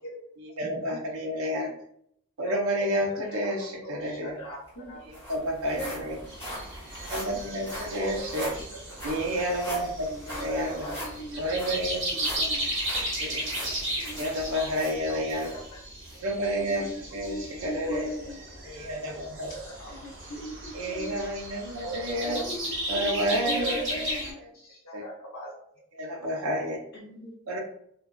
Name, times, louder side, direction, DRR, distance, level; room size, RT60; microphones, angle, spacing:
voice 1, 0.4-1.7 2.4-4.4 5.1-6.2 7.0-8.5 9.0-10.8 11.4-12.0 13.2-13.4 14.1-15.6 16.1-16.9 17.1-18.1 18.6-19.5 20.7-22.4 22.9-23.8 24.9-25.0 26.0-26.8 27.5-27.6, equal, 80° right, 1 dB, 0.5 m, -30 dB
voice 2, 2.4-2.9 3.1-3.5 3.8-4.6 4.9-5.0 7.9-8.7 9.4-9.5 10.3-10.9 12.4-12.5 14.5-14.6 15.0-15.8 17.7-18.2 19.1-20.0 21.8-22.4 23.4-24.1 24.5-25.5, right 1 dB, 75° left, -3 dB, 1.0 m, -38 dB
sound 1, 4.3-4.4 4.7-15.5 16.0-16.2 16.7-16.8, equal, 10° left, 1.2 m, -41 dB
voice 3, 5.8-6.2 7.3-7.4 10.1-10.5 10.9-11.4 12.1-12.7 13.4-13.5 14.0-14.3 16.5-18.4 19.9-21.2 22.2-22.7 22.9-24.4 26.9-27.3, equal, 50° left, -3 dB, 0.7 m, -39 dB
sound 2, 6.3-24.3, right 1 dB, 55° right, 0.9 m, -36 dB
2.5 x 2.2 x 2.2 m, 0.69 s
head